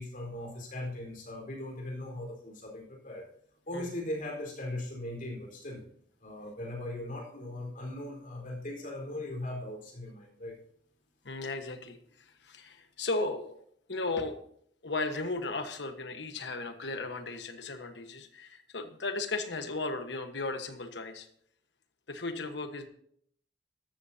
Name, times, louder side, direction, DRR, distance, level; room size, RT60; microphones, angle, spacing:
voice 1, 0.0-3.3 3.7-5.8 6.2-10.6, left 1 dB, 50° left, 0 dB, 4.3 m, -39 dB
voice 2, 11.2-14.4 14.8-21.3 22.1-22.9, left 3 dB, 70° left, 7 dB, 1.3 m, -36 dB
14.0 x 13.0 x 2.8 m, 0.65 s
head